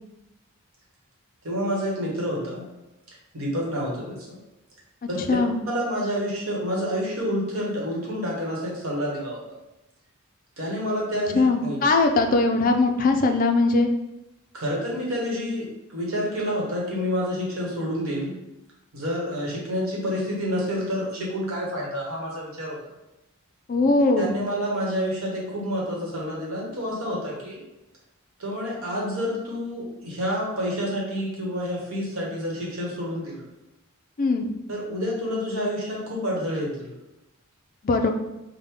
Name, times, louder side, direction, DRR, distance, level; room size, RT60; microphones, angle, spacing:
voice 1, 1.4-2.7 3.3-4.4 5.1-5.4 5.7-9.4 10.6-11.8 14.5-18.4 18.9-22.8 24.2-27.6 28.4-33.4 34.7-36.9, equal, 65° right, -3 dB, 1.2 m, -28 dB
voice 2, 11.3-13.9 23.7-24.4 34.2-34.5 37.8-38.1, left 3 dB, 40° left, 4 dB, 0.3 m, -20 dB
4.9 x 2.2 x 3.5 m, 0.95 s
head